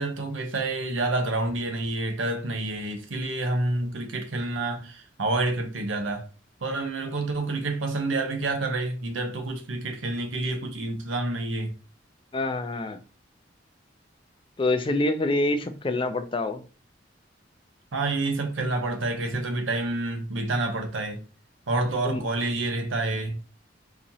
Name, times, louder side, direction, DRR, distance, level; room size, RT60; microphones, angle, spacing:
voice 1, 0.0-6.3 6.6-11.7 17.9-21.2 21.7-23.4, right 2 dB, 90° right, 0.8 m, -28 dB
voice 2, 12.3-13.0 14.6-16.6 22.0-22.2, left 2 dB, 25° left, 0.4 m, -26 dB
4.1 x 2.8 x 2.7 m
head